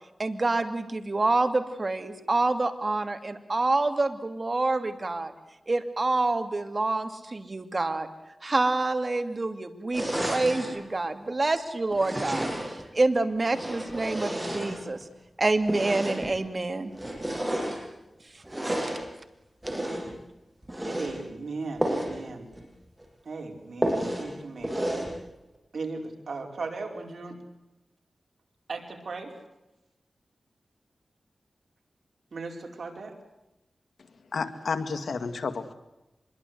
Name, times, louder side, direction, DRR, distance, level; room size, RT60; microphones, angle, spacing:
voice 1, 0.2-5.3 5.7-8.1 8.4-12.5 12.9-15.0 15.4-16.9 18.8-18.9, right 2 dB, 40° right, 8 dB, 2.7 m, -27 dB
sound 1, 9.9-10.7 11.9-12.8 13.4-15.1 15.6-16.4 16.9-17.8 18.4-19.0 19.6-20.2 20.6-21.1 21.8-22.2 22.5-22.6 23.0-23.1 23.8-24.3 24.6-25.1, right 1 dB, 15° right, 7.8 m, -31 dB
voice 2, 20.8-22.5 23.2-24.9 25.7-27.4 28.7-29.3 32.3-33.1, right 3 dB, 75° right, 3 dB, 5.0 m, -37 dB
voice 3, 34.3-35.7, left 4 dB, 85° left, 10 dB, 2.1 m, -31 dB
25.5 x 22.5 x 8.0 m, 0.96 s
wide cardioid pair, 80°, 0 cm